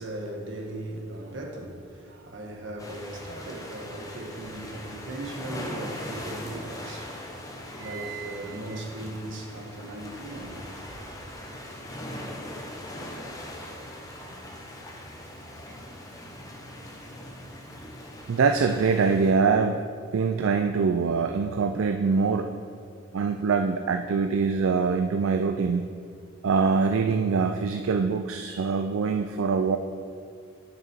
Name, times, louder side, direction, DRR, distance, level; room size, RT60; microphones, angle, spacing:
voice 1, 0.0-7.3 7.8-11.2, right 1 dB, 65° right, 1.3 m, -38 dB
sound 1, 2.8-19.3, left 1 dB, 15° left, 0.9 m, -40 dB
voice 2, 7.8-8.5 18.3-19.8 20.1-22.5 23.1-25.9 26.4-29.8, right 5 dB, 85° right, 0.4 m, -24 dB
9.6 x 6.1 x 4.5 m
head